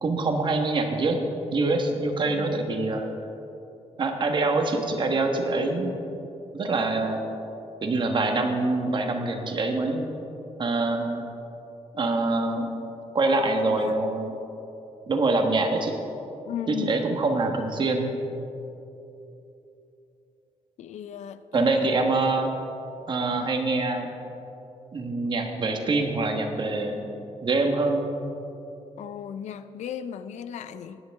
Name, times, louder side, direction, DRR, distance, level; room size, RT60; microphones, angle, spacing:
voice 1, 0.0-1.2 1.5-3.1 4.0-5.9 6.5-7.2 7.8-10.1 10.6-11.2 11.9-12.7 13.1-14.3 15.1-15.9 16.7-18.1 21.5-22.5 23.1-24.1 24.9-27.1 27.4-28.1, right 3 dB, 40° right, 4 dB, 1.3 m, -25 dB
voice 2, 2.2-2.6 13.6-14.0 14.3-14.4 16.4-17.0 20.8-21.7 29.0-31.0, left 9 dB, 80° left, 13 dB, 0.5 m, -36 dB
17.0 x 10.5 x 3.6 m, 2.9 s
cardioid pair, 125°, 12 cm